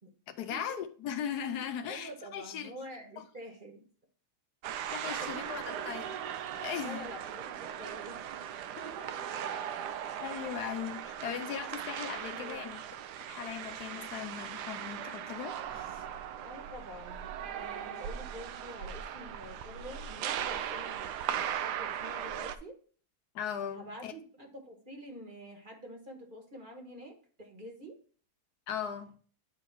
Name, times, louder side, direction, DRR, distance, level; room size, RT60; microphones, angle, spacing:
voice 1, 0.3-2.7 4.9-6.1 6.5-7.1 9.3-9.5 10.2-12.8 13.3-16.0 23.3-24.1 28.7-29.1, left 8 dB, 75° left, 1.2 m, -38 dB
voice 2, 1.5-3.9 5.0-6.0 6.8-8.2 8.7-9.6 12.2-12.6 16.4-22.8 23.7-28.0, right 1 dB, 35° right, 1.4 m, -47 dB
sound 1, 4.6-22.6, right 9 dB, 85° right, 1.2 m, -38 dB
9.3 x 3.7 x 4.5 m
omnidirectional pair, 1.7 m